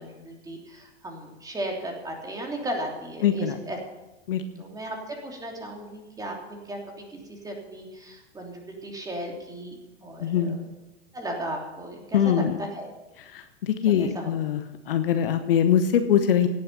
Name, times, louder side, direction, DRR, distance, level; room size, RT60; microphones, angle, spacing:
voice 1, 0.0-3.8 4.6-6.8 7.3-10.7 11.1-12.9 13.8-14.3, right 1 dB, 10° right, 1 dB, 3.2 m, -36 dB
voice 2, 3.2-3.6 4.3-4.4 10.2-10.6 12.1-12.5 13.3-14.6 14.9-16.5, left 9 dB, 55° left, 9 dB, 1.2 m, -22 dB
17.5 x 9.4 x 6.9 m, 1.0 s
figure-of-eight pair, 100°, 34 cm